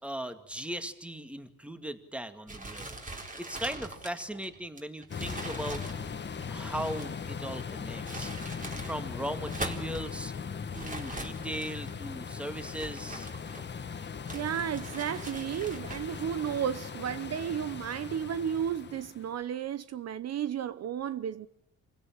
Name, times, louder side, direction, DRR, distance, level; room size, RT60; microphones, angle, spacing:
voice 1, 0.0-3.0 3.4-5.8 6.5-8.3 8.8-10.3 10.7-13.3, right 1 dB, 5° right, 2.2 m, -38 dB
sound 1, 2.5-7.2 7.8-9.0 9.3-10.1 10.7-11.9 12.5-13.8 14.3-16.3, right 2 dB, 25° right, 4.0 m, -42 dB
sound 2, 5.1-19.3, left 6 dB, 35° left, 1.5 m, -39 dB
voice 2, 14.3-21.5, right 9 dB, 55° right, 0.9 m, -33 dB
25.5 x 17.0 x 8.8 m
cardioid pair, 90°, 30 cm